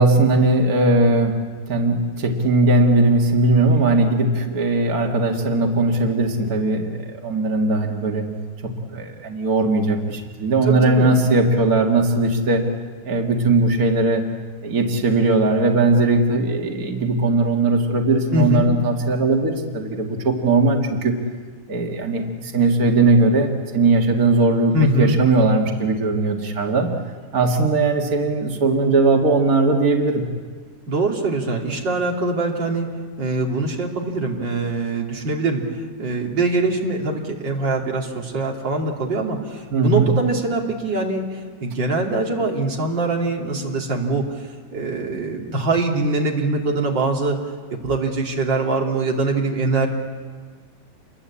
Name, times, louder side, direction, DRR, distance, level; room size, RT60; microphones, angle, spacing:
voice 1, 0.0-1.4 1.7-8.2 8.6-12.6 13.0-14.2 14.6-21.1 21.7-26.9 27.3-30.2 39.7-40.1, right 2 dB, 80° right, 2 dB, 0.8 m, -19 dB
voice 2, 10.6-11.1 18.3-18.7 24.7-25.2 30.9-32.9 33.2-47.4 47.7-49.9, right 2 dB, 30° right, 0 dB, 2.7 m, -23 dB
28.5 x 23.0 x 8.6 m, 1.5 s
omnidirectional pair, 4.9 m